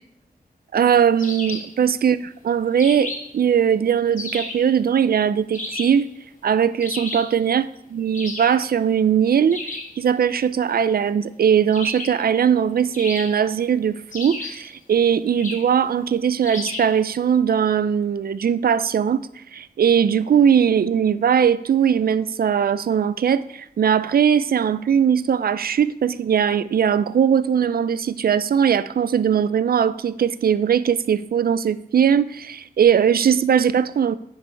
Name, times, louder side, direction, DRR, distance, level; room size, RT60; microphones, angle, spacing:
voice 1, 0.7-6.1 6.4-9.6 10.0-34.1, right 8 dB, 75° right, 0.4 m, -20 dB
sound 1, 1.2-1.8 2.8-3.4 4.2-4.7 5.5-6.1 6.8-7.4 8.1-8.6 9.5-10.0 11.7-12.3 12.9-13.6 14.1-14.7 15.4-15.7 16.4-17.0, left 2 dB, 55° left, 1.7 m, -33 dB
9.7 x 5.5 x 4.6 m
wide cardioid pair, 90°, 16 cm